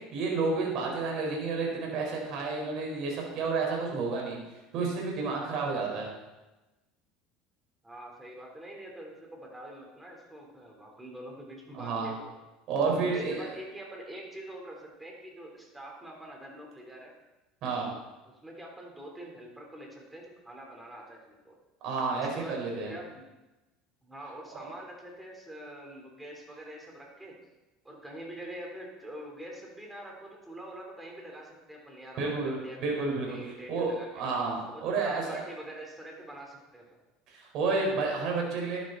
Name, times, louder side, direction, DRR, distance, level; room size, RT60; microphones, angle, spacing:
voice 1, 0.0-4.4 4.7-6.1 11.7-12.1 12.7-13.5 17.6-18.0 21.8-22.9 32.2-33.4 33.7-35.4 37.3-38.8, right 4 dB, 55° right, -1 dB, 4.7 m, -30 dB
voice 2, 7.8-12.2 13.0-17.1 18.4-21.6 22.1-22.6 22.9-23.3 24.0-27.3 27.8-32.8 33.3-34.2 34.7-36.8, right 1 dB, 10° right, 0 dB, 4.0 m, -45 dB
12.0 x 11.0 x 4.2 m, 1.1 s
supercardioid pair, 100°, 0 cm